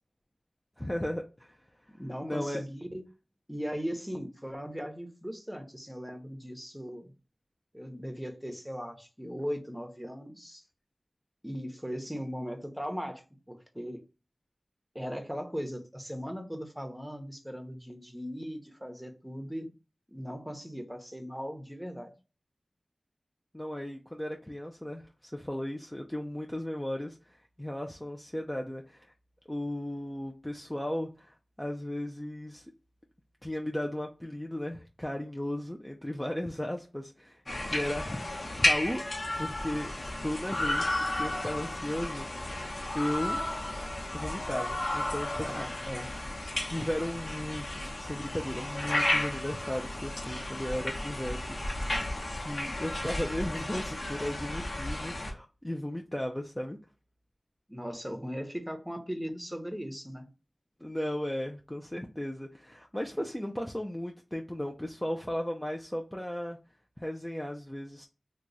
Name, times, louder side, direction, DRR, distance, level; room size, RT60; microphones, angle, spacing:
voice 1, 0.8-1.6 2.2-2.6 23.5-29.1 29.5-32.7 33.4-39.0 39.3-39.9 40.2-42.5 42.9-43.5 44.1-45.6 46.7-51.6 52.4-56.8 60.8-66.6 67.0-68.1, left 1 dB, 10° left, 0.5 m, -35 dB
voice 2, 1.9-3.0 3.5-7.1 7.7-10.6 11.4-13.2 13.5-14.0 14.9-19.7 20.1-22.1 37.5-37.7 45.4-46.1 57.7-60.3, equal, 5° right, 0.8 m, -38 dB
sound 1, 37.5-55.3, left 1 dB, 65° left, 1.0 m, -33 dB
3.0 x 2.3 x 3.8 m
wide cardioid pair, 50°, 0 cm